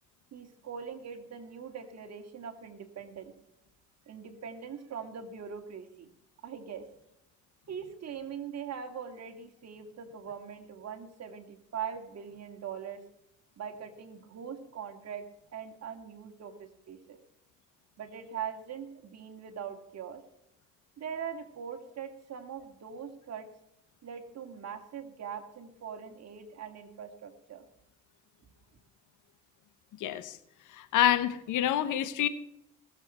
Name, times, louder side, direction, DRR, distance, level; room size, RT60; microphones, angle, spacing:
voice 1, 0.3-3.3 4.1-6.1 6.4-6.9 7.7-13.0 13.6-15.2 15.5-17.2 18.0-20.2 21.0-23.5 24.0-27.7, right 7 dB, 60° right, 6 dB, 2.3 m, -41 dB
voice 2, 30.0-30.4 30.7-32.3, left 11 dB, 85° left, 13 dB, 1.2 m, -27 dB
19.0 x 7.7 x 4.4 m, 0.80 s
cardioid pair, 90°, 30 cm